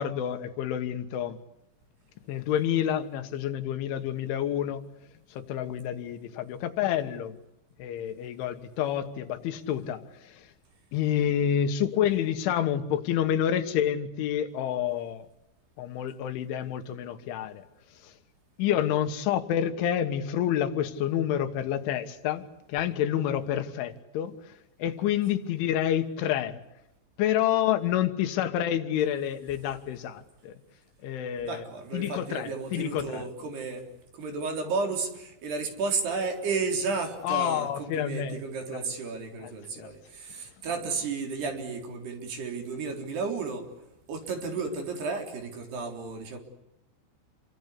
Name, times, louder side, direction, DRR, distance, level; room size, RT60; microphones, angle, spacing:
voice 1, 0.0-1.4 2.3-4.8 5.3-7.4 7.8-10.4 10.9-15.3 15.8-17.6 18.0-18.1 18.6-24.3 24.8-26.6 27.2-30.5 31.0-31.6 31.9-33.2 37.2-38.4 38.7-38.8 39.4-39.5 39.8-39.9, left 10 dB, 80° left, 3.9 m, -28 dB
voice 2, 31.4-33.9 34.1-43.7 44.1-46.4, right 4 dB, 60° right, 5.8 m, -33 dB
28.5 x 24.0 x 8.4 m
omnidirectional pair, 5.4 m